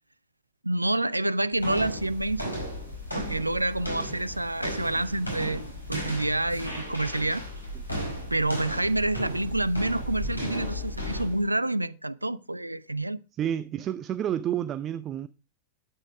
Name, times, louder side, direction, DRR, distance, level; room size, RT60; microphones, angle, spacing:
voice 1, 0.6-2.5 3.1-5.6 5.9-7.4 8.3-13.2, right 1 dB, 85° right, 0.5 m, -28 dB
sound 1, 1.6-11.5, equal, 85° left, 4.6 m, -35 dB
voice 2, 13.4-15.3, right 10 dB, 30° right, 0.6 m, -29 dB
12.0 x 8.8 x 4.7 m
figure-of-eight pair, 90°, 0 cm